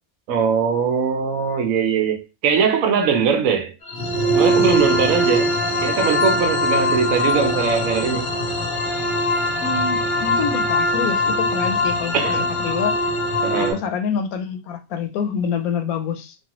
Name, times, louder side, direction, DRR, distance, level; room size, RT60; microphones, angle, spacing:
voice 1, 0.3-3.7 4.3-8.3 12.1-12.5 13.4-13.8, right 6 dB, 70° right, 1.0 m, -21 dB
sound 1, 3.9-13.7, left 1 dB, 50° left, 0.7 m, -21 dB
voice 2, 9.6-12.2 12.6-13.0 13.5-16.4, left 6 dB, 80° left, 1.1 m, -26 dB
3.2 x 2.3 x 2.9 m
omnidirectional pair, 1.5 m